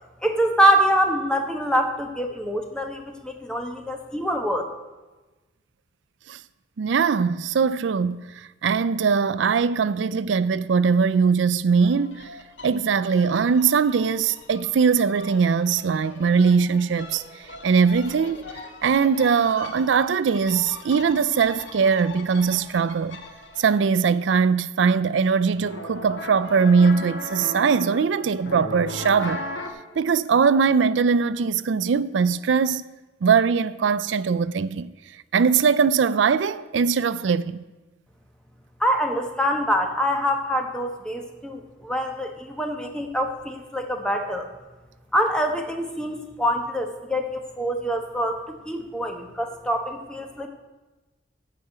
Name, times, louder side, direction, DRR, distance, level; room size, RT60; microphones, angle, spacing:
voice 1, 0.2-4.6 38.8-44.5 45.1-50.5, equal, 5° left, 1.0 m, -25 dB
voice 2, 6.8-12.3 12.6-18.4 18.8-23.2 23.6-29.5 30.0-32.8 33.2-34.9 35.3-37.6, right 5 dB, 80° right, 0.4 m, -21 dB
sound 1, 11.8-23.9 25.5-29.7, left 2 dB, 85° left, 1.4 m, -39 dB
15.0 x 5.0 x 8.0 m
head